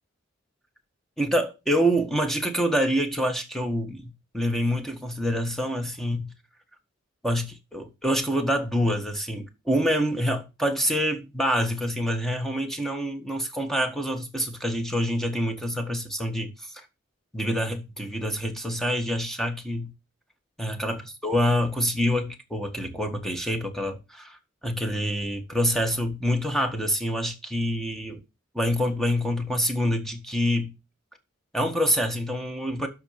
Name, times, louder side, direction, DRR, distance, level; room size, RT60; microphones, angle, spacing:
voice 1, 1.2-6.3 7.2-16.9 17.3-19.9 20.6-24.4 24.6-28.2 28.5-30.7 31.5-32.9, equal, ahead, 1.8 m, -26 dB
12.5 x 4.6 x 6.8 m
head